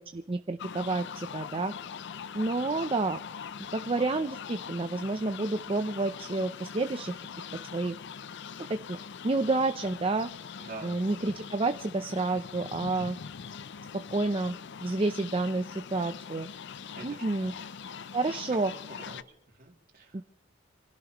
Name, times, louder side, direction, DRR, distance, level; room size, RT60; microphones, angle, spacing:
voice 1, 0.0-1.7 2.3-3.2 3.7-7.1 7.7-8.0 8.7-9.0 9.2-10.3 10.8-13.2 14.1-14.6 14.8-16.5 17.0-17.5 18.1-18.7 20.1-20.2, right 3 dB, 30° right, 8 dB, 0.6 m, -29 dB
sound 1, 0.6-19.2, left 7 dB, 60° left, 0.5 m, -42 dB
voice 2, 10.6-11.0 16.9-17.6 18.2-18.4 18.7-19.2 19.6-20.2, right 3 dB, 45° right, -6 dB, 2.7 m, -46 dB
27.0 x 16.5 x 3.1 m, 0.76 s
head